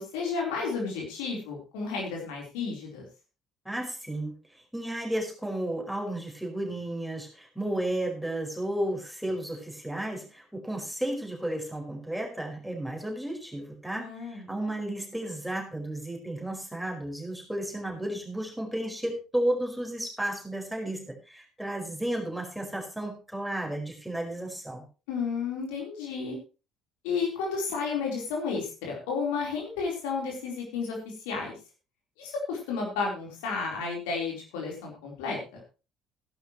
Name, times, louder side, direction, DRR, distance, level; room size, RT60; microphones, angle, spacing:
voice 1, 0.0-3.0 14.0-14.5 25.1-26.4 27.0-31.5 32.2-35.6, left 5 dB, 65° left, -1 dB, 4.1 m, -32 dB
voice 2, 3.6-4.4 4.7-24.8, right 1 dB, ahead, 0 dB, 4.9 m, -33 dB
16.0 x 11.5 x 3.2 m, 0.32 s
figure-of-eight pair, 50°, 0 cm